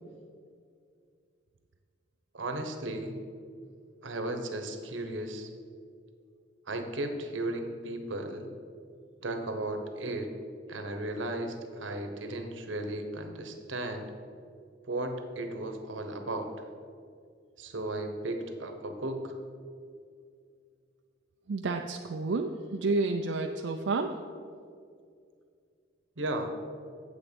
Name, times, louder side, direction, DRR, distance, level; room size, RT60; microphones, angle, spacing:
voice 1, 2.3-3.2 4.0-5.5 6.7-8.5 9.2-10.3 10.7-14.1 14.9-16.5 17.6-19.3 26.2-26.5, right 1 dB, 90° right, 6 dB, 1.1 m, -35 dB
voice 2, 21.5-24.2, right 3 dB, 70° right, 4 dB, 0.5 m, -30 dB
8.5 x 7.8 x 5.3 m, 2.3 s
head